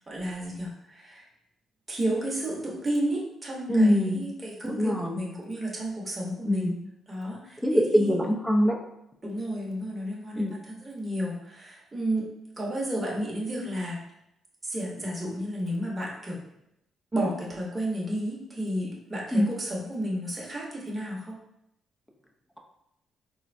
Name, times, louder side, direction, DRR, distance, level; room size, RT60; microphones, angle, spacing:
voice 1, 0.1-1.2 1.9-6.7 7.1-8.1 9.2-12.3 12.6-14.0 14.6-16.4 17.1-21.4, right 1 dB, 25° right, -3 dB, 0.9 m, -32 dB
voice 2, 3.7-4.2 4.6-5.2 6.5-6.8 7.6-8.8 10.4-10.5 19.3-19.5, equal, 5° left, 0 dB, 0.6 m, -23 dB
3.7 x 2.1 x 2.6 m, 0.80 s
cardioid pair, 90°, 0 cm